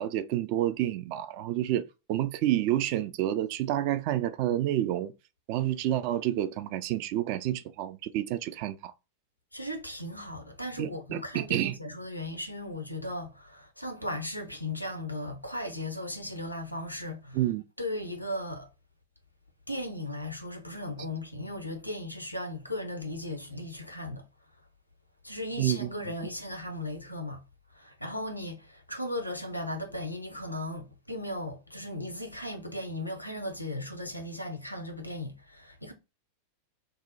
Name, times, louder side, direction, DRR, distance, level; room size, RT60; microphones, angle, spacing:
voice 1, 0.0-5.1 5.5-8.9 10.8-11.8 17.3-17.6 25.6-25.9, right 13 dB, 45° right, 0.3 m, -29 dB
voice 2, 9.5-17.4 17.8-18.7 19.7-24.2 25.2-27.4 27.8-35.9, left 1 dB, 90° left, 0.6 m, -37 dB
2.7 x 2.1 x 3.9 m
figure-of-eight pair, 90°, 0 cm